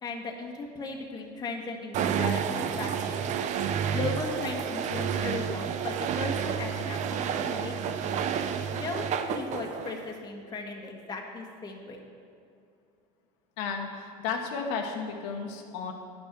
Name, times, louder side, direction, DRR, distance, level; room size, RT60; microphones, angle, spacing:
voice 1, 0.0-3.4 3.9-8.3 8.7-12.0, left 3 dB, 25° left, 1 dB, 1.3 m, -37 dB
sound 1, 1.9-10.1, right 8 dB, 45° right, 0.6 m, -30 dB
voice 2, 13.6-15.9, left 5 dB, 75° left, 2 dB, 1.2 m, -33 dB
10.5 x 6.2 x 6.0 m, 2.6 s
supercardioid pair, 120°, 18 cm